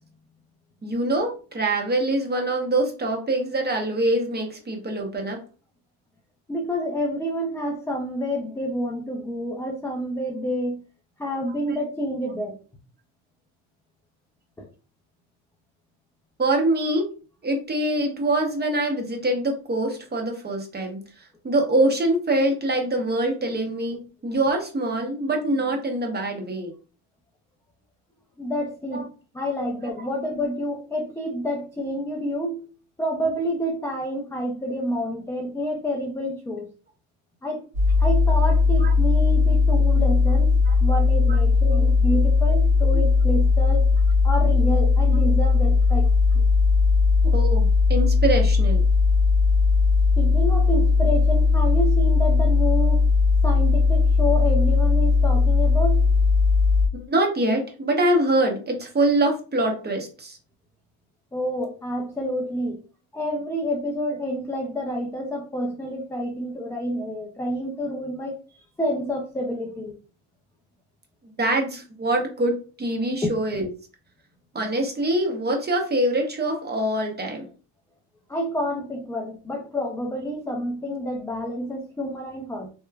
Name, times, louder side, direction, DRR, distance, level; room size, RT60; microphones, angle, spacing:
voice 1, 0.8-5.4 11.5-11.8 16.4-17.1 17.4-26.7 28.9-29.0 38.8-38.9 40.7-40.8 41.3-41.4 41.7-41.9 47.2-48.8 56.9-60.4 71.4-73.7 74.5-77.5, right 1 dB, 20° right, 2 dB, 0.8 m, -24 dB
voice 2, 6.5-10.8 11.2-12.6 14.6-14.7 28.4-29.1 29.3-32.7 33.0-36.7 37.4-37.6 38.0-40.5 40.8-43.9 44.2-46.1 50.2-53.0 53.4-56.1 61.3-62.8 63.1-68.4 68.8-69.9 73.2-73.3 78.3-82.7, equal, 5° left, -1 dB, 0.3 m, -28 dB
sound 1, 37.7-56.9, left 4 dB, 50° right, 1.1 m, -18 dB
2.9 x 2.2 x 2.3 m, 0.36 s
supercardioid pair, 85°, 49 cm